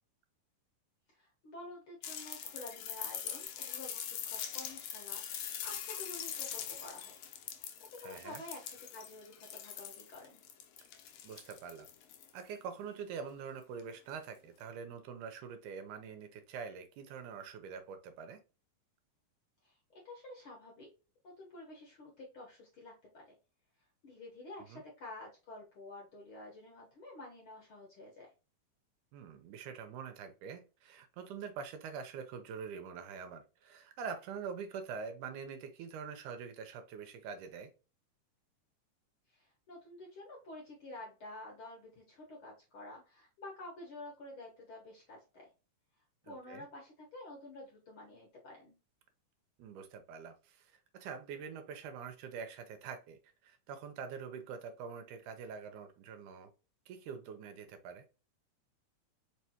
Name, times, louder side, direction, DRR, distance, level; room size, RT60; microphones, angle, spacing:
voice 1, 1.1-7.1 7.6-10.4 19.6-20.9 21.2-23.3 24.0-28.3 39.3-45.4 46.2-48.8, left 2 dB, 55° left, -2 dB, 1.6 m, -50 dB
sound 1, 2.0-12.4 13.8-13.9, left 9 dB, 85° left, 1.4 m, -43 dB
voice 2, 8.0-8.4 11.2-11.9 12.3-18.4 24.7-24.8 29.1-37.7 46.2-46.7 49.6-56.5 56.9-58.0, right 6 dB, 80° right, 8 dB, 2.1 m, -45 dB
4.9 x 3.3 x 2.8 m, 0.32 s
omnidirectional pair, 3.7 m